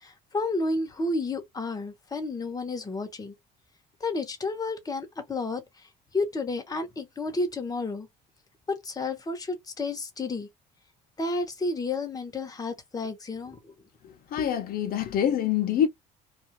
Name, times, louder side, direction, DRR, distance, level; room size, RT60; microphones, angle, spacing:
voice 1, 0.0-3.3 4.0-8.1 8.7-10.5 11.2-13.7, left 2 dB, 20° left, 0.9 m, -31 dB
voice 2, 14.3-15.9, left 9 dB, 60° left, 0.6 m, -25 dB
2.4 x 2.4 x 2.9 m
cardioid pair, 110°, 17 cm